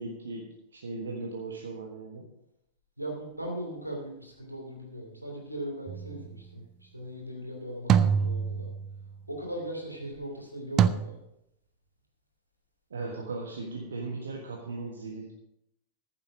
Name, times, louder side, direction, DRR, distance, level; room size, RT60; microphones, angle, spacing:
voice 1, 0.0-2.3 12.9-15.3, right 3 dB, 70° right, 1 dB, 1.4 m, -37 dB
voice 2, 3.0-8.7 9.3-11.2, right 1 dB, 90° right, 0 dB, 2.9 m, -39 dB
sound 1, 5.9-6.3 7.9-9.1 10.8-10.9, right 8 dB, 30° right, 0.6 m, -25 dB
14.5 x 7.5 x 5.0 m, 0.80 s
figure-of-eight pair, 90°, 0 cm